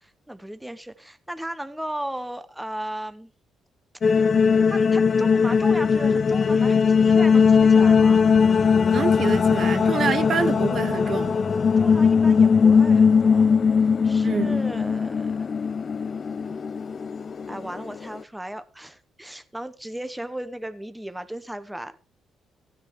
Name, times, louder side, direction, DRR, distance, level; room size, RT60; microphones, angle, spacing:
voice 1, 0.0-3.3 4.7-8.2 11.8-13.5 14.0-15.5 17.5-22.0, right 1 dB, 5° right, 1.0 m, -36 dB
sound 1, 4.0-18.2, left 6 dB, 45° left, 0.6 m, -19 dB
voice 2, 8.9-11.3 14.2-14.6, right 6 dB, 50° right, 0.9 m, -26 dB
15.5 x 9.6 x 3.1 m
cardioid pair, 90°, 0 cm